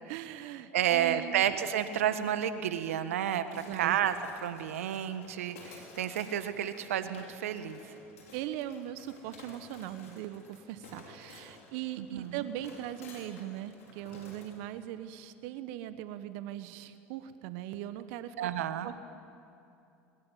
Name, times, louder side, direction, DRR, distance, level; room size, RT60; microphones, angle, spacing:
voice 1, 0.1-1.6 3.6-4.0 8.3-18.5 18.8-19.0, right 12 dB, 65° right, 12 dB, 1.2 m, -40 dB
voice 2, 0.7-4.1 4.4-7.8 12.0-12.4 18.4-18.9, right 10 dB, 80° right, 10 dB, 1.5 m, -31 dB
sound 1, 3.5-14.6, left 3 dB, 85° left, 5.7 m, -53 dB
22.5 x 20.5 x 9.4 m, 2.7 s
hypercardioid pair, 85°, 7 cm